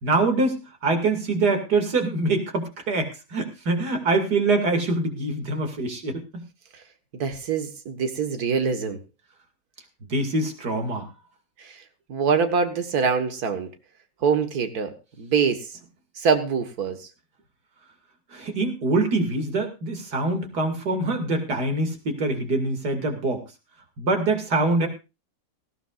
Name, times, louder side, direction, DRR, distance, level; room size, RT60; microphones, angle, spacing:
voice 1, 0.0-6.4 10.0-11.1 18.3-23.4 24.0-24.9, right 2 dB, 90° right, 5 dB, 3.0 m, -24 dB
voice 2, 7.1-9.0 11.6-11.8 12.1-13.7 14.2-15.7 16.2-17.1, right 6 dB, 70° right, 7 dB, 2.0 m, -24 dB
19.0 x 15.0 x 2.5 m, 0.28 s
omnidirectional pair, 1.7 m